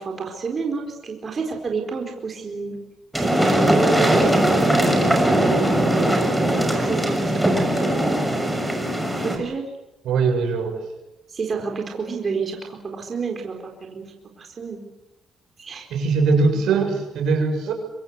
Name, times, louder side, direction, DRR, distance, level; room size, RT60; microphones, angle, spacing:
voice 1, 0.0-2.8 3.2-5.1 5.4-6.3 6.8-8.0 9.2-9.6 11.3-14.1 14.4-14.8 15.6-16.1 16.7-16.9, right 5 dB, 40° right, 2 dB, 4.3 m, -29 dB
sound 1, 3.1-9.4, right 1 dB, 5° right, 6.3 m, -20 dB
voice 2, 10.0-10.8 15.9-17.7, right 4 dB, 80° right, 5 dB, 7.0 m, -21 dB
25.0 x 24.0 x 8.2 m, 0.95 s
cardioid pair, 90°, 0 cm